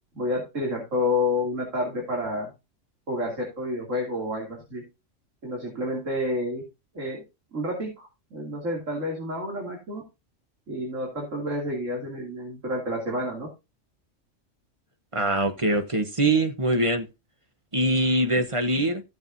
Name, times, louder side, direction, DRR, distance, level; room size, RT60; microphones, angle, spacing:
voice 1, 0.1-2.5 3.1-4.8 5.4-6.6 6.9-7.2 7.5-10.0 10.7-13.5, left 1 dB, 85° right, 3.1 m, -29 dB
voice 2, 15.1-17.1 17.7-19.0, right 1 dB, 25° right, 1.1 m, -23 dB
15.0 x 6.8 x 2.7 m
omnidirectional pair, 1.3 m